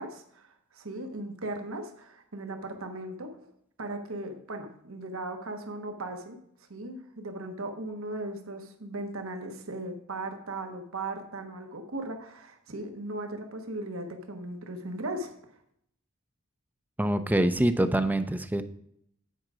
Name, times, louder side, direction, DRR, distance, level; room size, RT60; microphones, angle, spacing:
voice 1, 0.0-3.5 3.8-6.4 6.7-15.3, right 2 dB, 90° right, 5 dB, 1.2 m, -37 dB
voice 2, 17.0-18.6, right 1 dB, 10° right, 10 dB, 0.5 m, -25 dB
9.0 x 5.0 x 6.1 m, 0.71 s
head